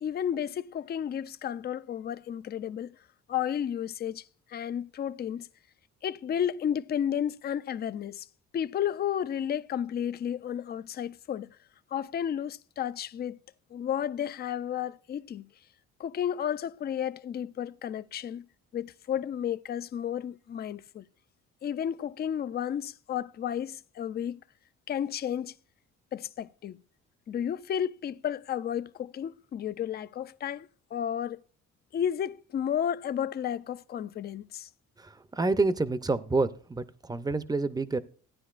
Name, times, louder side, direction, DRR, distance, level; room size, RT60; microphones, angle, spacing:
voice 1, 0.0-3.0 3.3-4.2 4.5-5.5 6.0-8.3 8.5-11.5 11.9-13.4 13.7-15.5 16.0-18.5 18.7-21.0 21.6-24.4 24.9-25.5 26.1-26.8 27.3-31.4 31.9-34.7, left 9 dB, 35° left, 0.4 m, -32 dB
voice 2, 35.0-38.0, right 3 dB, 15° right, 0.6 m, -28 dB
15.0 x 9.7 x 2.4 m
cardioid pair, 90°, 30 cm